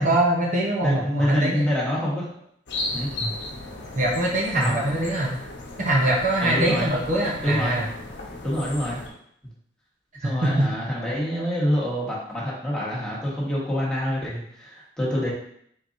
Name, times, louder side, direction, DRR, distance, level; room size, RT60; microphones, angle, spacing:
voice 1, 0.0-1.7 3.2-3.3 4.0-5.4 5.8-7.9 10.2-10.7, right 1 dB, 45° right, -3 dB, 0.8 m, -23 dB
voice 2, 0.8-2.3 2.9-3.1 4.5-4.8 6.4-6.9 7.4-7.8 8.4-9.0 10.2-15.3, equal, 5° left, -7 dB, 1.2 m, -26 dB
sound 1, 2.7-9.1, left 2 dB, 75° left, 0.8 m, -36 dB
4.5 x 3.8 x 2.6 m, 0.67 s
head